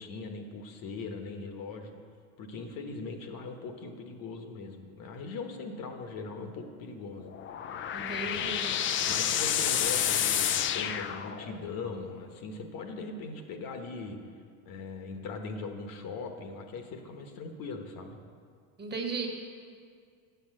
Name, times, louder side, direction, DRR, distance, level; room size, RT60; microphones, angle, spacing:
voice 1, 0.0-1.9 2.4-7.3 8.2-8.5 9.1-14.2 14.6-18.2, left 4 dB, 55° left, 5 dB, 1.2 m, -40 dB
sound 1, 7.2-11.7, left 9 dB, 30° left, 0.4 m, -29 dB
voice 2, 7.9-8.7 18.8-19.3, right 4 dB, 25° right, 2 dB, 1.4 m, -35 dB
8.2 x 8.0 x 6.4 m, 2.1 s
supercardioid pair, 125°, 42 cm